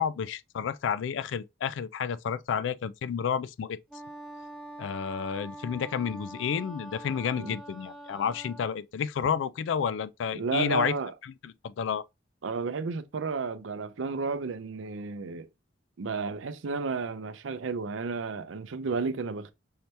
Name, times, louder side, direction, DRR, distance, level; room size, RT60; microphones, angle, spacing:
voice 1, 0.0-3.8 4.8-10.9 11.4-12.0, left 7 dB, 75° left, 0.3 m, -30 dB
Wind instrument woodwind instrument, 3.9-8.8, right 1 dB, ahead, 0.9 m, -44 dB
voice 2, 10.3-11.1 12.4-15.5 16.0-19.5, right 4 dB, 85° right, 0.5 m, -32 dB
5.6 x 2.8 x 3.2 m
head